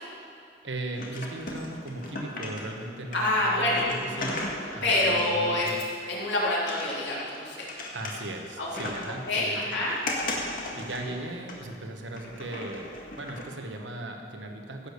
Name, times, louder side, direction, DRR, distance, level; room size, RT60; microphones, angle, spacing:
voice 1, 0.6-5.8 7.9-9.9 10.7-12.9 13.2-14.9, right 2 dB, 90° right, 3 dB, 1.2 m, -37 dB
sound 1, 1.0-2.8 3.1-6.2 6.7-8.5 8.7-9.2 9.6-11.8 12.1-13.4, left 2 dB, 50° left, 1.8 m, -36 dB
voice 2, 3.1-3.8 4.8-5.7 6.1-7.7 8.6-8.7 9.2-9.9, left 1 dB, 75° left, -5 dB, 3.3 m, -26 dB
16.0 x 6.8 x 6.7 m, 2.4 s
head